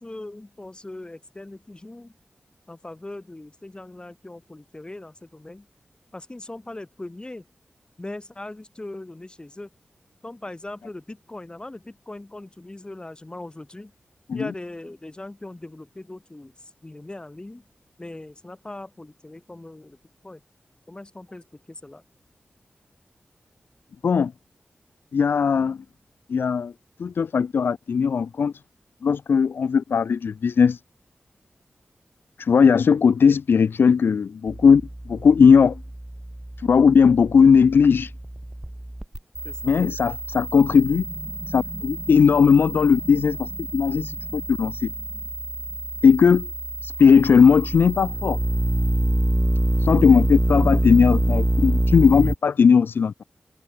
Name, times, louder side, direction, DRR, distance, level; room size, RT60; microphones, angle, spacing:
voice 1, 0.0-2.1 2.7-5.6 6.1-7.5 8.0-9.7 10.2-13.9 14.3-16.5 16.8-17.6 18.0-20.0 20.2-20.4 20.9-22.0 39.4-39.8, left 2 dB, 25° left, 5.2 m, -40 dB
voice 2, 25.1-25.8 26.3-26.7 27.0-28.5 29.0-30.8 32.4-35.8 36.6-38.1 39.6-41.0 41.5-44.9 46.0-46.5 46.8-48.4 49.8-53.1, left 6 dB, 85° left, 0.6 m, -18 dB
sound 1, 34.5-52.3, right 1 dB, 15° right, 0.5 m, -27 dB
wide cardioid pair, 65°, 4 cm